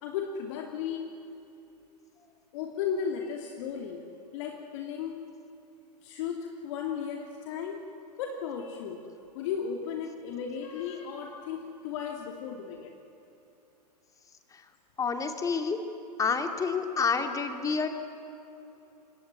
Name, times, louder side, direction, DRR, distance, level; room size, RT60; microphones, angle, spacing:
voice 1, 0.0-1.1 2.5-4.0 4.3-5.2 6.0-7.8 8.2-9.0 9.3-12.9, left 7 dB, 50° left, 2 dB, 2.7 m, -35 dB
voice 2, 15.0-15.8 16.2-17.9, left 5 dB, 15° left, 6 dB, 2.5 m, -28 dB
26.5 x 21.5 x 9.6 m, 2.9 s
hypercardioid pair, 115°, 21 cm